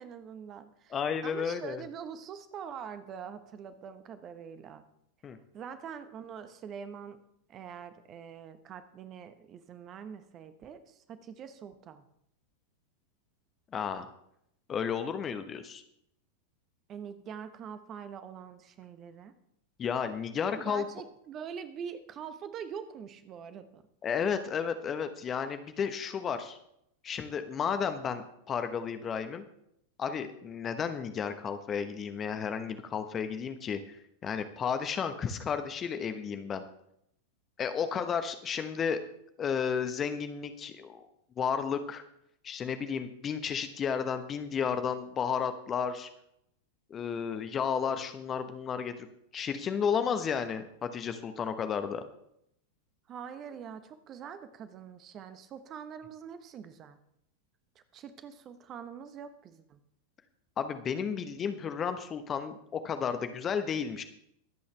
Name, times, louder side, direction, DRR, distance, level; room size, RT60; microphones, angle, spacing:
voice 1, 0.0-1.0 1.2-4.8 5.5-7.2 7.5-12.0 16.9-19.3 20.6-23.8 53.1-57.0 57.7-59.8, right 7 dB, 30° right, 11 dB, 1.1 m, -44 dB
voice 2, 0.9-1.8 5.2-5.4 13.7-14.1 14.7-15.8 19.8-20.9 24.0-26.6 27.0-29.5 30.0-33.8 34.2-36.6 37.6-39.0 39.4-41.0 41.4-42.0 42.4-46.1 46.9-49.1 49.3-52.0 60.6-64.0, left 7 dB, 25° left, 9 dB, 1.1 m, -32 dB
23.0 x 8.5 x 3.4 m, 0.76 s
figure-of-eight pair, 90°, 0 cm